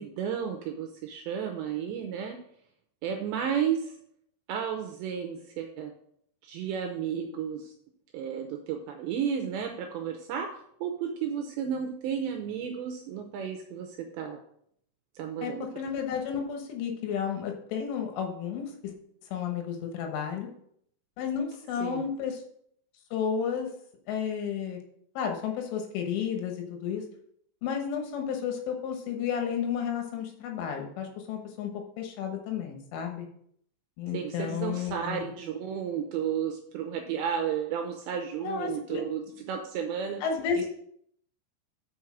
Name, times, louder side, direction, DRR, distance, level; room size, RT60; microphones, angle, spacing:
voice 1, 0.0-2.4 3.0-3.9 4.5-5.9 6.4-7.7 8.1-10.5 10.8-14.4 15.2-15.7 21.8-22.1 34.1-40.2 40.6-40.7, right 8 dB, 80° right, 4 dB, 2.6 m, -32 dB
voice 2, 15.4-18.9 19.3-20.5 21.2-22.4 23.1-23.7 24.1-24.8 25.2-27.0 27.6-33.3 34.0-35.3 38.4-39.0 40.2-40.7, left 7 dB, 75° left, 3 dB, 3.6 m, -32 dB
6.4 x 6.3 x 6.1 m, 0.68 s
omnidirectional pair, 5.8 m